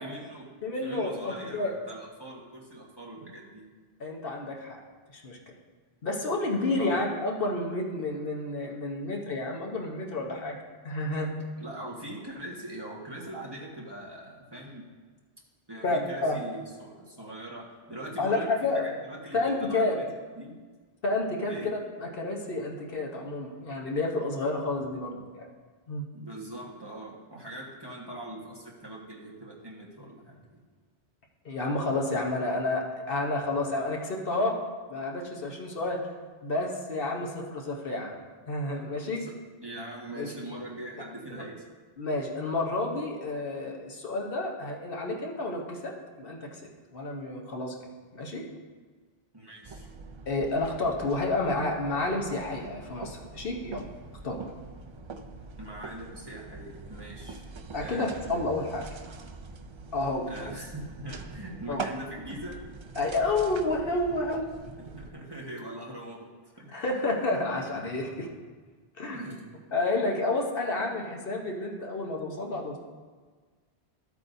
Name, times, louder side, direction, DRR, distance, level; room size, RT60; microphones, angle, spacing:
voice 1, 0.0-0.5 0.8-3.6 6.8-6.9 11.6-14.9 15.7-18.4 18.7-20.1 20.4-20.6 21.4-21.7 26.1-30.6 39.2-39.3 39.6-41.6 49.3-49.9 55.6-57.4 57.8-58.4 60.3-62.6 64.8-66.7 69.1-69.4, right 1 dB, 25° right, -4 dB, 1.5 m, -42 dB
voice 2, 0.6-1.7 4.0-4.8 5.1-5.4 6.0-10.6 10.8-11.3 15.8-16.4 18.2-18.8 19.3-20.0 21.0-25.5 25.9-26.1 31.4-34.6 34.9-36.0 36.4-38.2 38.5-39.3 40.2-40.3 41.3-41.4 42.0-46.6 46.9-47.7 48.1-48.4 50.3-53.9 54.2-54.4 57.7-58.9 59.9-60.5 61.7-61.8 63.0-64.5 66.7-68.3 69.0-69.3 69.7-72.8, left 2 dB, 60° left, 0 dB, 1.1 m, -30 dB
sound 1, 49.6-65.1, right 4 dB, 55° right, 0.3 m, -43 dB
12.5 x 8.2 x 2.7 m, 1.5 s
omnidirectional pair, 1.1 m